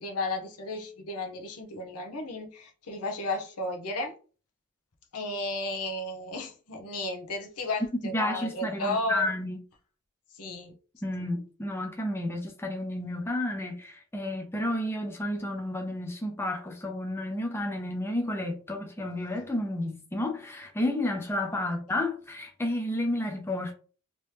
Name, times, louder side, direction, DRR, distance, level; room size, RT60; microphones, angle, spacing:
voice 1, 0.0-4.1 5.1-9.3 10.3-10.7 21.6-21.7, left 2 dB, 80° left, 0.8 m, -34 dB
voice 2, 8.0-9.6 11.0-23.7, left 1 dB, 10° left, 0.5 m, -31 dB
3.0 x 2.8 x 3.2 m
head